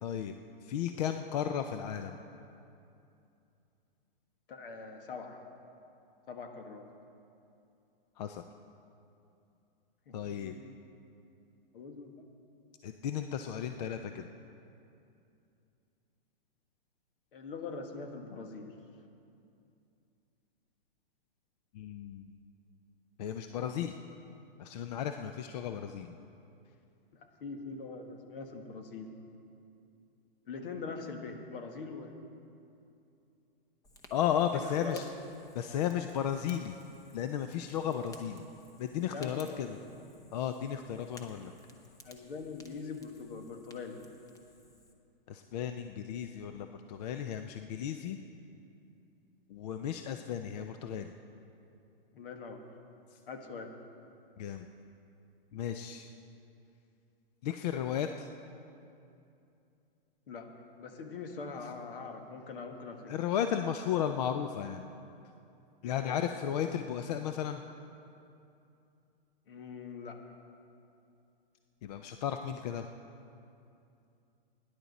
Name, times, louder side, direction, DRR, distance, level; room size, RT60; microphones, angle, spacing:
voice 1, 0.0-0.3 0.6-2.2 8.2-8.4 10.1-10.5 12.8-14.3 21.7-22.4 23.2-24.0 24.6-26.2 34.1-35.1 35.5-36.8 37.1-38.4 38.8-39.8 40.3-41.5 45.3-48.2 49.5-51.1 54.4-54.7 55.5-56.1 57.4-58.3 63.1-64.9 65.8-67.6 71.8-72.9, left 9 dB, 45° left, 7 dB, 0.5 m, -34 dB
voice 2, 4.5-5.4 6.3-6.9 10.1-10.7 11.7-12.2 17.3-18.7 27.1-29.1 30.5-32.2 34.5-35.1 39.1-39.9 42.0-44.0 52.1-52.6 53.3-53.7 60.3-60.5 60.8-63.1 66.0-66.2 69.5-70.2, left 4 dB, 65° left, 5 dB, 1.6 m, -43 dB
Fire, 33.8-44.9, left 2 dB, 10° left, 0.8 m, -58 dB
19.0 x 10.5 x 4.1 m, 2.7 s
hypercardioid pair, 145°, 29 cm